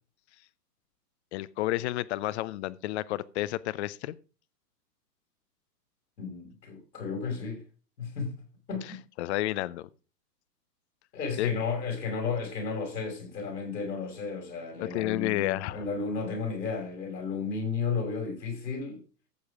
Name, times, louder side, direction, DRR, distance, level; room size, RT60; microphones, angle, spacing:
voice 1, 1.3-4.2 9.2-9.9 11.4-11.5 14.8-15.9, left 16 dB, 45° left, 0.7 m, -31 dB
voice 2, 6.2-7.6 8.0-8.3 8.7-9.0 11.1-19.0, left 5 dB, 80° left, 6.1 m, -33 dB
14.0 x 8.0 x 3.6 m
hypercardioid pair, 130°, 49 cm